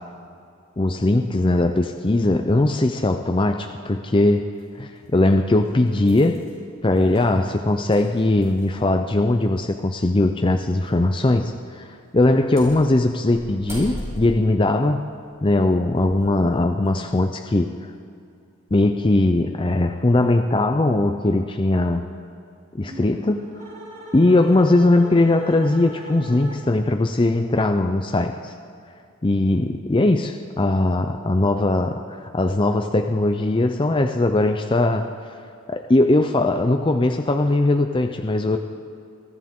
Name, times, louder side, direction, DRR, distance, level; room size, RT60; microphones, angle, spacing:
voice 1, 0.8-4.4 4.8-6.4 6.8-15.0 15.4-17.7 18.7-22.0 22.7-23.5 24.1-28.5 29.2-35.1 35.7-38.6, left 2 dB, 20° left, 5 dB, 0.5 m, -20 dB
sound 1, 4.6-4.7 5.4-8.9 9.2-9.3 10.6-10.8 11.2-11.5 12.2-16.2 16.7-16.9, equal, 15° right, 4.8 m, -39 dB
sound 2, 22.7-26.9, right 1 dB, 30° right, 3.2 m, -40 dB
24.0 x 14.0 x 3.7 m, 2.4 s
head